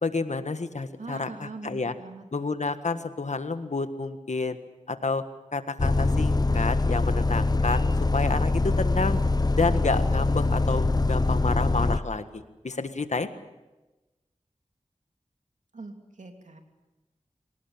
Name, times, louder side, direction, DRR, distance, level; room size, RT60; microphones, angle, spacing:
voice 1, 0.0-1.9 2.3-4.6 4.9-5.2 5.5-9.2 9.6-13.3, left 3 dB, 70° left, 10 dB, 1.6 m, -29 dB
voice 2, 1.0-2.2 15.7-16.6, right 3 dB, 80° right, 4 dB, 3.0 m, -41 dB
Bus, 5.8-12.0, left 2 dB, 35° left, 0.7 m, -23 dB
26.0 x 18.0 x 8.7 m, 1.1 s
wide cardioid pair, 45°, 12 cm